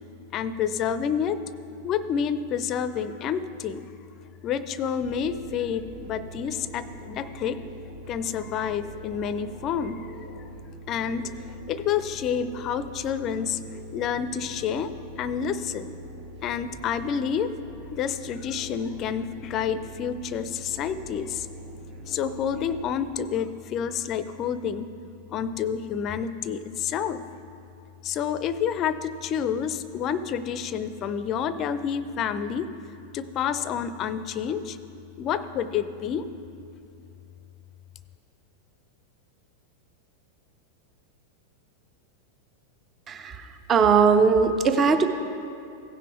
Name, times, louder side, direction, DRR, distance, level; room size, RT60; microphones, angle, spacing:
voice 1, 0.3-1.4 1.8-3.9 4.4-7.6 8.1-10.1 10.9-11.3 11.7-13.6 13.9-14.9 15.2-15.9 16.4-17.5 17.9-21.5 22.1-24.9 25.3-27.2 28.0-32.7 33.1-34.8 35.2-36.3, left 8 dB, 35° left, 14 dB, 0.5 m, -29 dB
sound 1, 5.0-22.8, right 2 dB, 50° right, 1.2 m, -43 dB
voice 2, 43.1-45.0, right 5 dB, 25° right, 8 dB, 0.6 m, -20 dB
16.0 x 5.9 x 4.6 m, 2.5 s
figure-of-eight pair, 90°, 0 cm